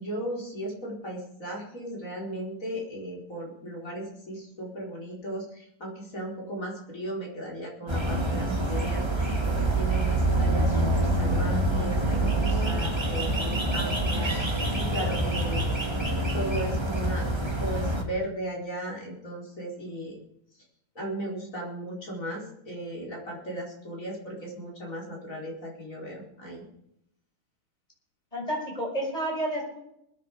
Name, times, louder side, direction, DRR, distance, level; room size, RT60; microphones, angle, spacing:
voice 1, 0.0-15.7 16.1-20.2 20.9-26.6, right 1 dB, 35° left, -3 dB, 5.0 m, -36 dB
sound 1, 7.9-18.0, right 1 dB, 15° right, 1.8 m, -26 dB
voice 2, 28.3-29.8, right 1 dB, 15° left, -2 dB, 6.2 m, -30 dB
21.5 x 10.0 x 4.9 m, 0.77 s
omnidirectional pair, 2.4 m